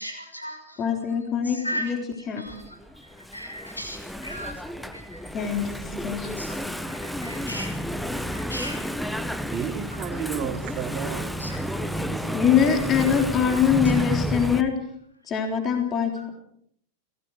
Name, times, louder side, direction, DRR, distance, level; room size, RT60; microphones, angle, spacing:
voice 1, 0.0-0.9 1.4-5.3 5.6-5.7 6.4-6.6 6.9-7.8 8.1-9.4 9.9-10.0 11.4-11.6 16.2-16.3, equal, 85° left, 4 dB, 6.2 m, -37 dB
voice 2, 0.8-2.0 2.3-2.4 5.3-6.3 12.3-14.8 15.3-16.3, left 7 dB, 30° left, 4 dB, 3.7 m, -23 dB
Engine / Mechanisms, 2.5-14.6, equal, ahead, 1.2 m, -31 dB
voice 3, 9.5-11.2 11.9-12.6, right 8 dB, 30° right, -2 dB, 3.4 m, -33 dB
30.0 x 18.0 x 4.9 m, 0.68 s
figure-of-eight pair, 90°, 0 cm